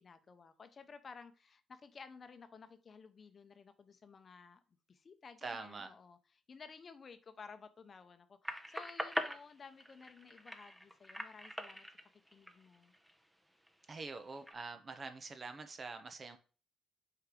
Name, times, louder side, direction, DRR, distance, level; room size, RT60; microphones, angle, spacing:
voice 1, 0.0-4.6 4.9-12.9, left 5 dB, 40° left, 9 dB, 0.8 m, -55 dB
voice 2, 5.4-5.9 13.9-16.4, right 4 dB, 35° right, 8 dB, 0.9 m, -45 dB
sound 1, 8.4-13.2 13.7-14.5, equal, 5° right, 0.9 m, -43 dB
6.6 x 4.8 x 3.7 m, 0.37 s
cardioid pair, 90°, 0 cm